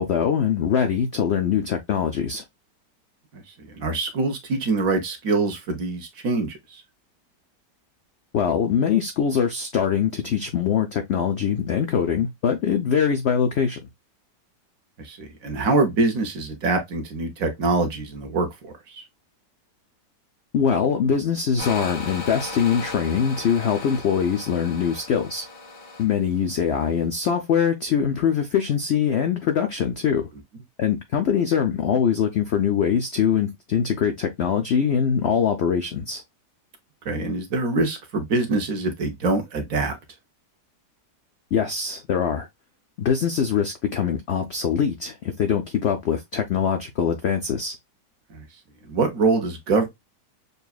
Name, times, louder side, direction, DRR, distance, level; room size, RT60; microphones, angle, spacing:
voice 1, 0.0-2.4 8.3-13.8 20.5-25.4 26.0-30.3 30.8-36.2 41.5-42.5 43.0-47.8, left 7 dB, 70° left, 0.6 m, -23 dB
voice 2, 3.7-6.8 15.0-19.0 37.0-40.0 48.3-48.4 48.8-49.9, right 3 dB, 60° right, 1.2 m, -24 dB
sound 1, 21.6-27.0, left 3 dB, 85° left, 2.0 m, -37 dB
6.7 x 2.3 x 2.3 m
omnidirectional pair, 1.8 m